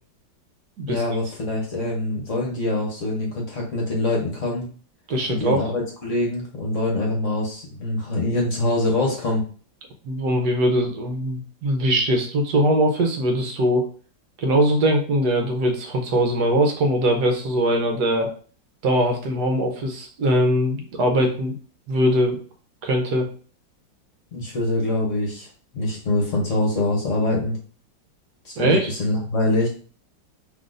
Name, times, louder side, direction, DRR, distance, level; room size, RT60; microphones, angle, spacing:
voice 1, 0.9-4.7 5.3-9.4 24.3-25.5 25.7-27.6 28.4-29.7, left 2 dB, 50° left, -1 dB, 1.2 m, -24 dB
voice 2, 5.1-5.7 10.0-13.8 14.4-18.3 18.8-21.5 21.9-22.4 22.8-23.3 28.6-28.9, right 1 dB, 65° right, 3 dB, 1.3 m, -21 dB
5.8 x 3.2 x 2.5 m, 0.42 s
omnidirectional pair, 2.0 m